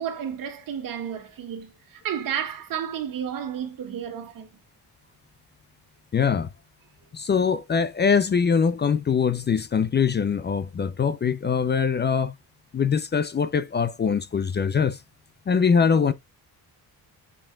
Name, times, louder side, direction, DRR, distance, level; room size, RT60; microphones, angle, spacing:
voice 1, 0.0-4.5, right 9 dB, 60° right, 2.0 m, -32 dB
voice 2, 6.1-6.5 7.1-12.3 12.7-15.0 15.5-16.1, left 6 dB, 30° left, 0.5 m, -22 dB
8.7 x 5.4 x 2.3 m
cardioid pair, 155°, 37 cm